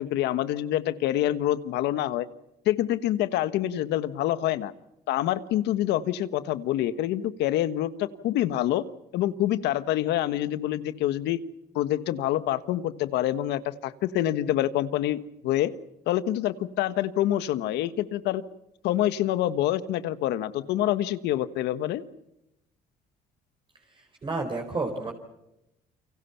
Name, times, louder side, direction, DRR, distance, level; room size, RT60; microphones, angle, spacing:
voice 1, 0.0-2.3 2.6-4.7 5.1-8.8 9.1-11.4 11.7-15.2 15.4-15.7 16.1-18.4 18.8-22.0, left 13 dB, 85° left, 13 dB, 1.4 m, -26 dB
voice 2, 23.9-25.1, right 3 dB, 30° right, 2 dB, 4.5 m, -31 dB
29.5 x 24.5 x 5.8 m, 0.88 s
cardioid pair, 110°, 17 cm